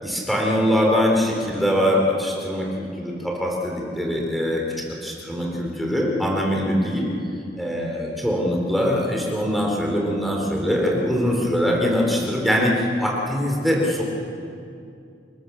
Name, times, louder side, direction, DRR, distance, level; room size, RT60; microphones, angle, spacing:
voice 1, 0.0-7.1 7.6-14.0, equal, ahead, -2 dB, 4.1 m, -22 dB
28.0 x 20.0 x 7.3 m, 2.5 s
head